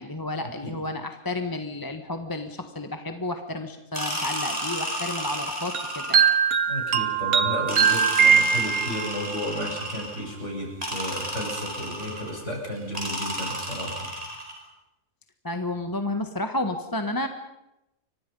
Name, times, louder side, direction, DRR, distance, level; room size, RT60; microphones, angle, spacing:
voice 1, 0.0-6.3 15.4-17.3, left 2 dB, 15° left, 6 dB, 1.3 m, -31 dB
sound 1, 3.9-6.5 7.7-10.3 10.8-12.4 12.9-14.6, equal, 25° right, 6.5 m, -32 dB
sound 2, 5.7-9.2, right 7 dB, 70° right, 1.5 m, -21 dB
voice 2, 6.7-14.1, left 1 dB, 50° left, -1 dB, 8.5 m, -33 dB
30.0 x 24.5 x 5.5 m, 0.90 s
omnidirectional pair, 1.6 m